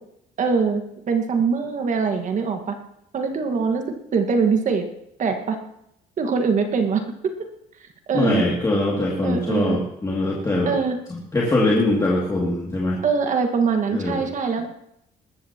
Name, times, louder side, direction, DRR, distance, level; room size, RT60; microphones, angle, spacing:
voice 1, 0.4-2.7 3.1-3.8 4.1-4.8 5.2-5.6 6.2-7.0 8.1-8.4 9.2-9.8 10.7-11.0 13.0-14.7, right 5 dB, 45° right, 6 dB, 1.7 m, -22 dB
voice 2, 8.1-10.8 11.1-13.0 13.9-14.2, left 2 dB, 20° left, -3 dB, 2.5 m, -22 dB
20.0 x 13.5 x 3.0 m, 0.77 s
cardioid pair, 110°, 17 cm